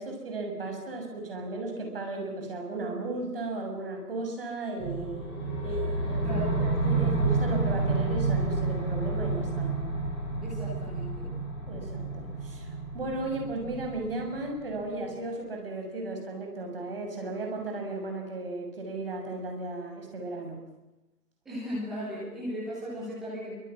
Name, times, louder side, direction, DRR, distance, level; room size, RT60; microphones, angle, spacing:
voice 1, 0.0-9.8 11.7-12.7 12.9-20.7, right 2 dB, 35° right, 2 dB, 7.1 m, -35 dB
sound 1, 4.8-14.9, right 3 dB, 15° left, 5.3 m, -30 dB
voice 2, 6.2-6.5 10.4-11.3 21.4-23.5, equal, ahead, -8 dB, 1.3 m, -36 dB
27.5 x 25.5 x 6.3 m, 1.0 s
figure-of-eight pair, 160°, 48 cm